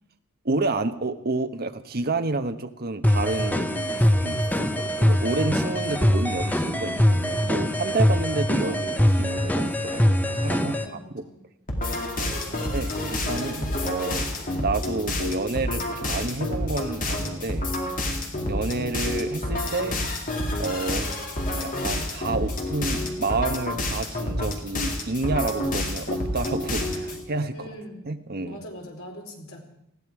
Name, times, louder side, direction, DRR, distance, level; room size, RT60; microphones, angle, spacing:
voice 1, 0.4-10.8 11.1-11.3 12.7-14.3 14.6-17.7 18.0-18.2 18.5-20.0 20.6-21.1 21.6-27.7 28.1-28.6, right 3 dB, 45° right, 8 dB, 1.1 m, -29 dB
sound 1, 3.0-10.9, equal, 10° left, 0.9 m, -23 dB
voice 2, 10.6-11.4 12.4-12.8 27.5-28.1 28.4-29.6, equal, 70° left, 1 dB, 3.8 m, -42 dB
sound 2, 11.7-27.2, left 1 dB, 40° left, 2.5 m, -29 dB
20.0 x 15.0 x 4.8 m, 0.80 s
head